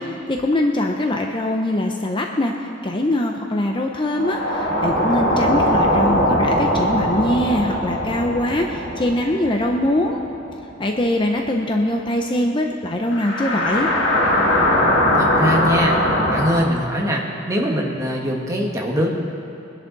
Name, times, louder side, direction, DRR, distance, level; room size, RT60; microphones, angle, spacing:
voice 1, 0.3-2.5 2.8-10.2 10.8-13.9, left 1 dB, 25° left, 2 dB, 0.7 m, -22 dB
sound 1, 4.1-10.7 11.0-11.1 13.1-16.6, left 1 dB, 70° left, 2.3 m, -20 dB
voice 2, 15.1-16.0 16.3-19.1, equal, 15° right, -1 dB, 1.6 m, -22 dB
22.5 x 10.5 x 4.1 m, 2.9 s
head